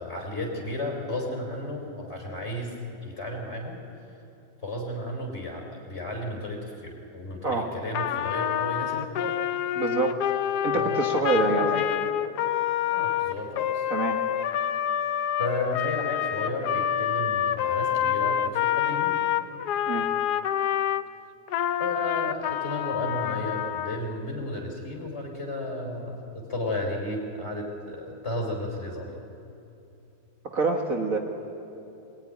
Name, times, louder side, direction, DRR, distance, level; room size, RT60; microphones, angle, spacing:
voice 1, 0.0-2.8 3.0-3.8 4.6-9.4 10.7-11.9 12.9-13.9 15.4-19.2 21.8-29.1, left 1 dB, 35° left, 1 dB, 4.0 m, -33 dB
Trumpet, 7.9-21.0 21.5-24.0, left 10 dB, 65° left, 1.1 m, -27 dB
voice 2, 9.8-10.3 10.6-11.7 13.9-14.2 19.9-20.1 30.5-31.2, right 3 dB, 45° right, 1 dB, 1.9 m, -26 dB
23.0 x 19.0 x 9.7 m, 2.8 s
omnidirectional pair, 2.0 m